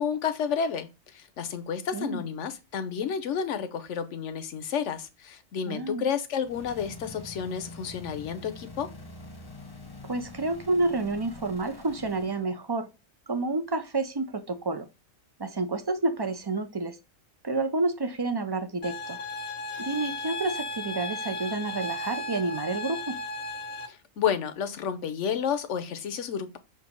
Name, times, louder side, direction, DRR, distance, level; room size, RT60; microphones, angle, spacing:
voice 1, 0.0-8.9 23.9-26.6, left 7 dB, 65° left, 1.1 m, -31 dB
voice 2, 1.9-2.2 5.7-6.0 10.1-12.9 13.3-14.9 15.4-17.0 17.4-19.2 19.8-23.1, right 3 dB, 35° right, 0.3 m, -29 dB
sound 1, 6.4-12.5, left 2 dB, 20° left, 0.9 m, -45 dB
sound 2, 18.8-23.9, left 2 dB, 80° left, 1.6 m, -35 dB
6.9 x 2.9 x 5.2 m
omnidirectional pair, 1.4 m